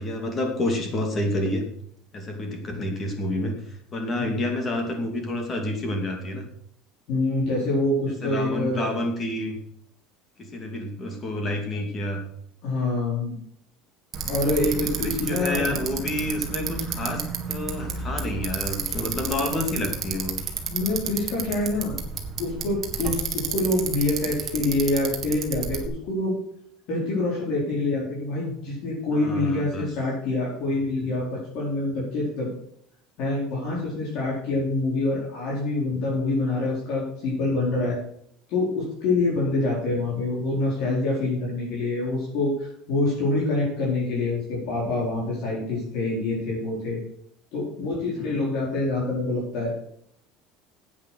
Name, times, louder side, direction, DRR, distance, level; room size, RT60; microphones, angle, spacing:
voice 1, 0.0-1.6 2.1-6.5 8.2-9.6 10.4-12.2 15.0-20.4 29.1-29.9 48.1-48.4, left 1 dB, 25° left, 3 dB, 2.6 m, -29 dB
voice 2, 7.1-8.9 12.6-13.4 14.3-15.8 20.7-21.9 22.4-26.4 26.9-32.5 33.2-38.0 38.5-47.0 47.5-49.7, left 2 dB, 55° left, -5 dB, 4.5 m, -26 dB
Bicycle, 14.1-25.9, right 6 dB, 30° right, 1.8 m, -31 dB
10.0 x 8.8 x 6.3 m, 0.70 s
cardioid pair, 160°, 0 cm